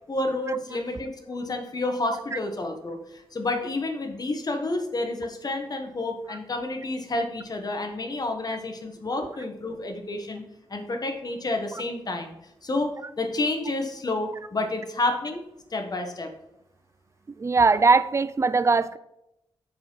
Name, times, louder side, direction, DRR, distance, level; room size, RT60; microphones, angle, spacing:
voice 1, 0.1-10.4 10.7-12.3 12.6-12.9 13.2-15.4 15.7-16.3, left 2 dB, 45° left, 1.4 m, -29 dB
voice 2, 17.4-19.0, right 4 dB, 30° right, 0.4 m, -20 dB
6.8 x 4.9 x 5.5 m
cardioid pair, 55°, 9 cm